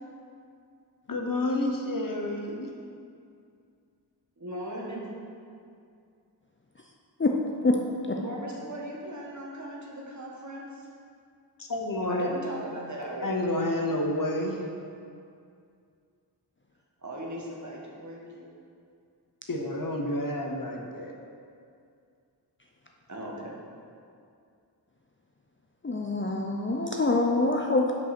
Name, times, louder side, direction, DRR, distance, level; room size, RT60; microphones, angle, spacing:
voice 1, 1.1-2.7 11.6-12.3 13.2-14.7 19.5-21.2, left 1 dB, 55° left, 1 dB, 0.9 m, -29 dB
voice 2, 4.4-5.1 8.2-10.9 12.1-13.3 17.0-18.5 23.1-23.6, right 1 dB, 45° right, -3 dB, 1.4 m, -38 dB
voice 3, 25.8-27.9, left 2 dB, 30° left, 0 dB, 0.5 m, -25 dB
5.4 x 5.3 x 5.9 m, 2.4 s
wide cardioid pair, 50°, 41 cm